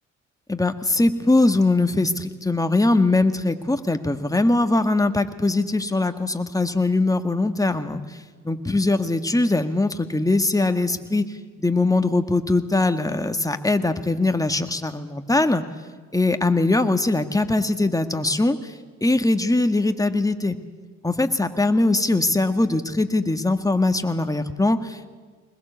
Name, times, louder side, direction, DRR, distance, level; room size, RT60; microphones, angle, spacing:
voice 1, 0.5-8.0 8.4-11.3 11.6-15.6 16.1-18.7 19.0-20.6 21.0-25.1, left 2 dB, 10° left, 8 dB, 1.9 m, -21 dB
21.0 x 20.5 x 8.4 m, 1.5 s
hypercardioid pair, 50°, 34 cm